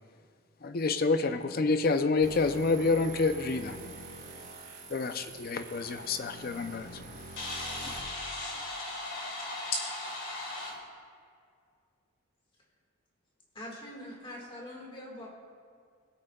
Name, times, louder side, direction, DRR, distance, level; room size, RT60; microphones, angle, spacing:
voice 1, 0.6-3.9 4.9-7.0, left 3 dB, 45° left, 9 dB, 0.5 m, -28 dB
sound 1, 2.2-8.0, right 2 dB, 35° right, 2.7 m, -46 dB
voice 2, 7.4-10.8, left 2 dB, 60° left, -2 dB, 2.5 m, -36 dB
voice 3, 13.5-15.3, left 1 dB, 25° left, -2 dB, 1.7 m, -43 dB
21.5 x 8.8 x 2.3 m, 2.1 s
head